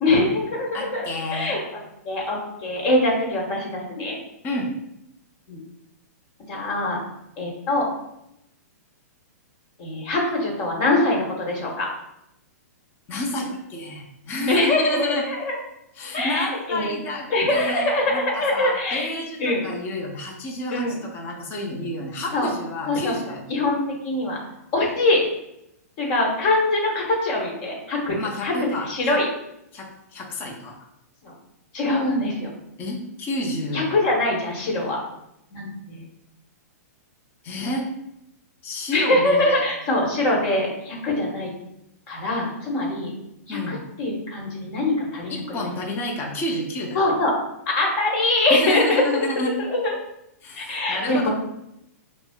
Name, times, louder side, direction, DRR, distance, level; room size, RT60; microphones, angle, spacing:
voice 1, 0.0-4.2 5.5-5.6 6.5-7.0 7.4-7.9 9.8-11.9 14.5-15.6 16.1-16.9 17.3-19.1 19.4-19.7 20.7-21.0 22.3-22.5 22.9-23.2 23.5-23.7 24.0-24.4 24.7-25.3 26.0-28.5 28.9-29.3 31.2-31.3 31.7-32.5 33.7-35.0 35.5-36.0 38.9-41.5 42.1-43.1 43.5-45.6 46.9-47.3 47.8-49.4 49.7-49.9 50.6-51.3, left 2 dB, 40° left, -1 dB, 1.2 m, -23 dB
voice 2, 0.7-1.6 4.4-4.7 13.1-15.2 16.0-23.4 28.2-29.2 29.7-30.9 32.8-33.8 37.4-37.9 38.6-39.7 43.5-43.8 45.3-47.0 48.5-49.5 50.4-51.3, left 1 dB, 25° left, -1 dB, 0.7 m, -30 dB
6.0 x 2.0 x 2.3 m, 0.82 s
hypercardioid pair, 140°, 9 cm